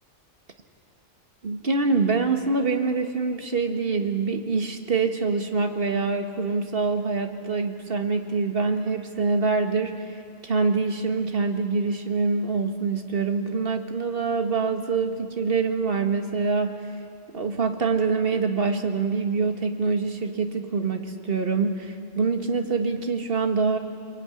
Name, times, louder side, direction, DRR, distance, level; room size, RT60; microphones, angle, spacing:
voice 1, 1.4-10.0 10.4-16.8 17.3-23.8, right 4 dB, 50° right, 5 dB, 2.0 m, -25 dB
25.5 x 23.5 x 10.0 m, 2.2 s
omnidirectional pair, 1.3 m